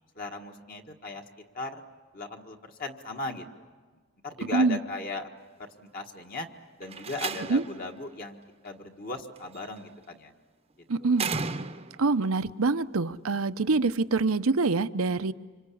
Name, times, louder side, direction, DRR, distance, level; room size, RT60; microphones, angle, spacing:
voice 1, 0.1-1.2 1.5-1.7 2.1-3.7 4.2-5.3 5.6-6.5 6.8-8.4 8.6-10.3 11.0-11.2, left 2 dB, 45° left, 3 dB, 1.7 m, -37 dB
Slam, 6.8-7.8 9.4-9.8 11.1-12.1, right 4 dB, 30° right, 0.8 m, -34 dB
voice 2, 10.9-11.3 12.0-15.3, right 3 dB, 90° right, 13 dB, 0.8 m, -25 dB
26.0 x 26.0 x 8.6 m, 1.5 s
head